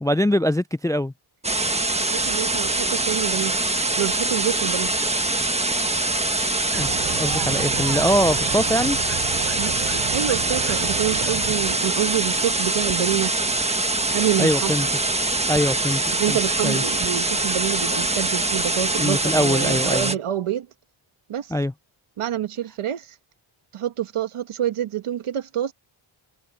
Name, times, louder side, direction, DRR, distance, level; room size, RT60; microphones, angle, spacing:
voice 1, 0.0-1.1 6.7-9.0 14.4-14.9 15.5-16.8 19.0-20.2 21.5-21.7, equal, 10° left, 0.3 m, -23 dB
sound 1, 1.4-20.1, right 2 dB, 15° right, 1.4 m, -23 dB
voice 2, 2.1-3.5 4.0-4.9 9.6-13.5 14.1-14.9 16.1-20.7 21.3-21.5 22.2-23.2 23.7-25.7, right 11 dB, 80° right, 1.7 m, -27 dB
sound 2, 6.7-11.8, right 10 dB, 55° right, 1.1 m, -32 dB
cardioid pair, 95°, 50 cm